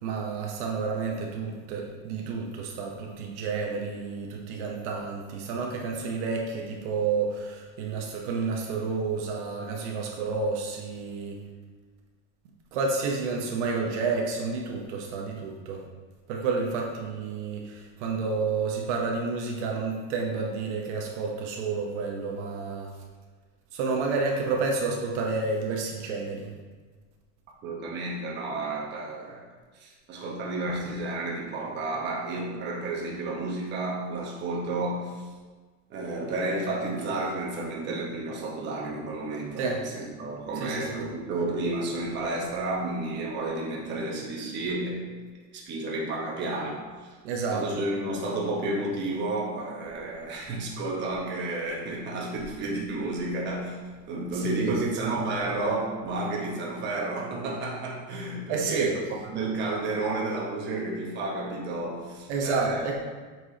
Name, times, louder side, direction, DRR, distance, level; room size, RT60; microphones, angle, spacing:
voice 1, 0.0-11.4 12.7-15.8 16.3-22.9 23.7-26.5 39.6-39.8 40.6-41.1 47.2-47.6 54.5-54.7 58.5-58.9 62.3-62.9, right 4 dB, 60° right, 0 dB, 1.0 m, -30 dB
voice 2, 27.6-29.4 29.8-35.2 35.9-45.2 45.5-47.1 47.5-53.8 54.1-62.9, right 2 dB, 25° right, -3 dB, 1.1 m, -31 dB
7.9 x 4.6 x 2.8 m, 1.4 s
supercardioid pair, 150°, 40 cm